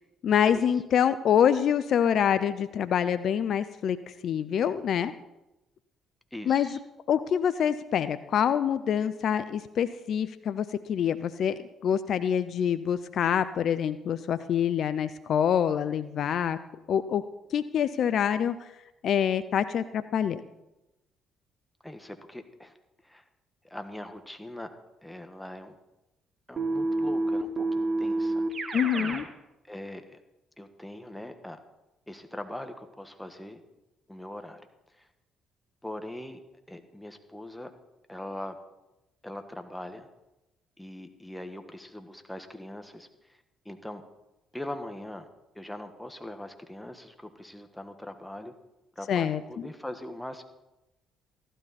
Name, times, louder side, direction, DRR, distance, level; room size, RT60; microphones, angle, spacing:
voice 1, 0.2-5.1 6.5-6.8 7.1-16.6 16.9-17.2 17.5-18.7 19.0-20.4 28.7-29.2 49.1-49.4, left 8 dB, 60° left, 12 dB, 0.5 m, -26 dB
voice 2, 6.3-6.8 21.8-22.7 23.0-23.2 23.6-24.7 25.0-25.8 26.5-28.4 29.6-30.2 30.6-31.6 32.1-33.6 34.1-34.7 34.9-35.1 35.8-36.4 36.7-37.7 38.1-38.6 39.2-40.1 40.8-43.4 43.6-44.0 44.5-45.3 45.5-48.5 48.9-50.4, left 1 dB, 5° left, 7 dB, 1.5 m, -41 dB
Keyboard (musical), 26.6-29.3, right 2 dB, 40° right, 1.5 m, -28 dB
15.0 x 12.0 x 4.2 m, 0.96 s
hypercardioid pair, 55°, 0 cm